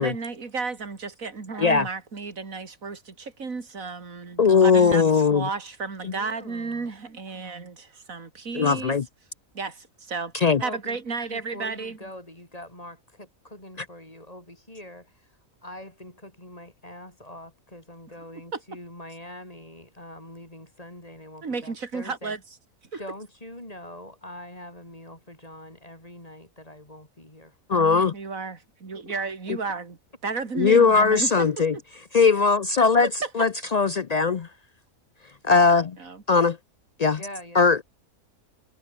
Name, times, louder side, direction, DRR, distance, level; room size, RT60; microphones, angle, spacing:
voice 1, 0.0-9.0 9.5-10.3 10.6-12.0 18.5-18.6 21.4-22.4 22.9-23.0 27.7-30.0 30.2-31.3 31.7-31.8 33.2-33.3 36.0-36.2, right 4 dB, 70° right, 3.1 m, -33 dB
voice 2, 4.4-5.5 6.0-6.1 8.5-9.1 10.3-10.6 27.7-28.1 30.6-31.7 32.1-33.1 33.3-34.5 35.4-36.0 36.3-36.6 37.0-37.2 37.5-37.8, left 5 dB, 70° left, 0.3 m, -19 dB
voice 3, 6.1-6.9 10.6-11.0 11.3-15.3 15.6-22.3 23.0-27.6 37.2-37.7, left 1 dB, 25° left, 6.0 m, -43 dB
omnidirectional pair, 1.5 m